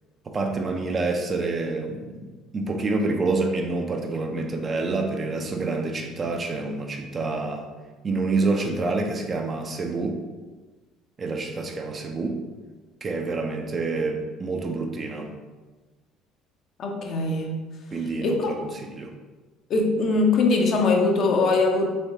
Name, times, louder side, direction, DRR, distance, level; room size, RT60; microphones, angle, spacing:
voice 1, 0.3-2.2 2.5-7.7 8.0-10.2 11.2-12.4 13.0-15.3 17.9-19.1, right 3 dB, 35° right, 3 dB, 0.5 m, -27 dB
voice 2, 16.8-17.6 18.2-18.6 19.7-21.9, left 3 dB, 50° left, 2 dB, 0.6 m, -22 dB
3.4 x 3.1 x 2.8 m, 1.3 s
figure-of-eight pair, 55°, 0 cm